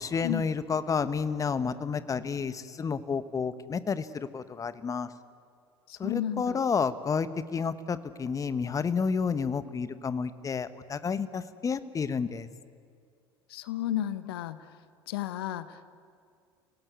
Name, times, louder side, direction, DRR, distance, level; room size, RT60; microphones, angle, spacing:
voice 1, 0.0-5.1 6.0-12.5, left 5 dB, 25° left, 13 dB, 1.3 m, -30 dB
voice 2, 5.9-6.6 13.5-14.6 15.1-16.0, left 12 dB, 65° left, 13 dB, 1.1 m, -33 dB
30.0 x 18.0 x 9.4 m, 2.3 s
figure-of-eight pair, 75°, 13 cm